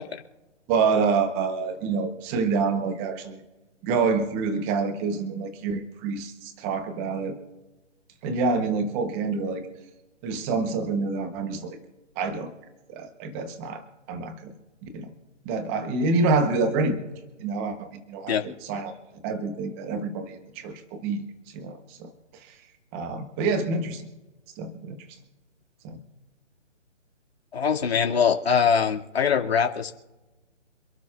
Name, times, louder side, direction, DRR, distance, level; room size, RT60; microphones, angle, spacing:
voice 1, 0.7-3.4 3.8-7.4 8.2-9.7 10.2-11.8 12.2-12.5 12.9-13.8 14.1-14.5 14.8-15.1 15.4-17.0 17.4-18.9 19.2-21.2 21.5-22.1 22.9-24.0 24.6-25.0 25.8-26.0, right 4 dB, 10° right, 8 dB, 1.0 m, -27 dB
voice 2, 27.5-29.9, left 6 dB, 55° left, 2 dB, 2.3 m, -22 dB
27.5 x 12.0 x 2.4 m, 1.1 s
hypercardioid pair, 155°, 36 cm